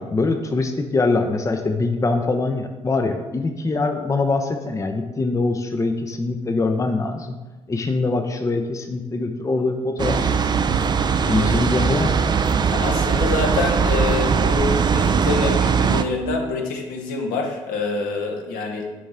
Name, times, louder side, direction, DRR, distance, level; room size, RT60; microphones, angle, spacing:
voice 1, 0.0-7.4 7.7-10.5 11.2-12.2, left 3 dB, 20° left, 5 dB, 0.6 m, -23 dB
sound 1, 10.0-16.0, right 6 dB, 25° right, 0.4 m, -20 dB
voice 2, 12.7-18.9, left 4 dB, 60° left, 2 dB, 1.0 m, -26 dB
9.2 x 4.1 x 3.6 m, 1.2 s
figure-of-eight pair, 45°, 16 cm